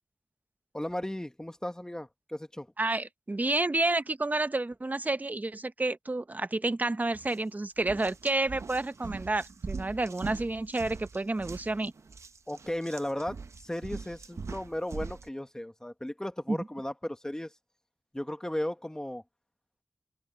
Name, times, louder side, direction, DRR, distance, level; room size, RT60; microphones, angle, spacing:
voice 1, 0.7-2.7 12.5-17.5 18.1-19.2, left 1 dB, 15° left, 1.5 m, -35 dB
voice 2, 2.8-11.9 16.5-16.6, right 2 dB, 35° right, 0.9 m, -30 dB
sound 1, 7.1-7.4 7.8-15.3, right 4 dB, 75° right, 0.8 m, -42 dB
open air
wide cardioid pair, 70°, 5 cm